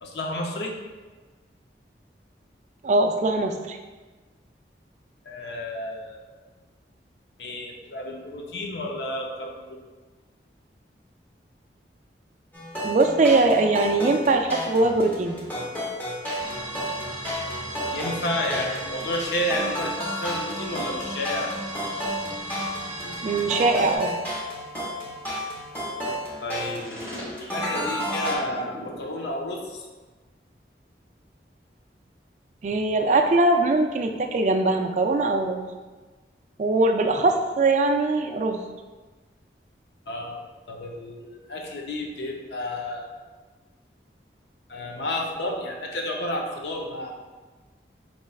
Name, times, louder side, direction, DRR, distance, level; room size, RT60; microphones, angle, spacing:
voice 1, 0.0-0.7 5.2-6.4 7.4-9.8 17.9-21.5 26.4-29.9 40.1-40.4 40.7-43.1 44.7-47.1, left 1 dB, 75° left, 1 dB, 0.6 m, -31 dB
voice 2, 2.8-3.8 12.8-15.4 23.2-24.2 32.6-35.6 36.6-38.6, right 2 dB, 40° right, 5 dB, 0.3 m, -21 dB
sound 1, 12.5-28.4, equal, 10° left, 0.8 m, -32 dB
sound 2, 16.4-24.0, right 1 dB, 20° right, 0.7 m, -36 dB
sound 3, 26.8-28.9, equal, 50° left, 1.4 m, -38 dB
5.2 x 3.0 x 2.3 m, 1.3 s
head